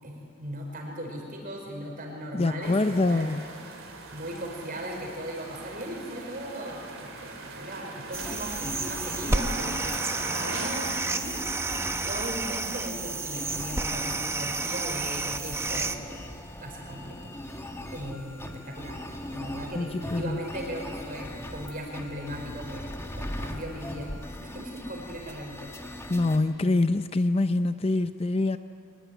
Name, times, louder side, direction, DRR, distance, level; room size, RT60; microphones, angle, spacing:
voice 1, 0.0-3.6 4.1-16.2 16.6-17.3 17.9-25.7, equal, 40° right, 1 dB, 4.9 m, -38 dB
voice 2, 2.3-3.5 19.7-20.4 26.1-28.6, left 2 dB, 30° left, 10 dB, 0.5 m, -25 dB
sound 1, 2.6-10.7, right 3 dB, 70° right, 3.1 m, -41 dB
sound 2, 8.1-26.4, left 1 dB, 10° left, 1.6 m, -40 dB
sound 3, 8.1-16.0, right 3 dB, 10° right, 0.8 m, -31 dB
24.5 x 20.0 x 9.5 m, 2.6 s
head